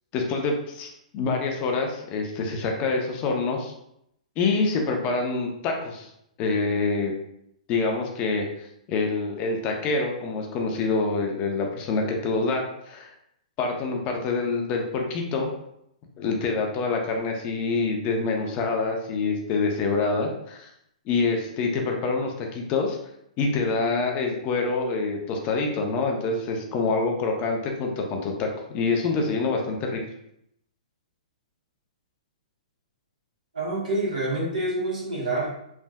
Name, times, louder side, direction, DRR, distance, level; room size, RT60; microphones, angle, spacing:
voice 1, 0.1-3.7 4.4-6.1 6.4-7.1 7.7-13.1 13.6-15.5 16.2-20.7 21.1-23.0 23.4-30.0, left 3 dB, 35° left, 2 dB, 0.5 m, -26 dB
voice 2, 33.5-35.5, right 2 dB, 90° right, -5 dB, 1.4 m, -27 dB
3.3 x 2.5 x 2.2 m, 0.76 s
hypercardioid pair, 130°, 4 cm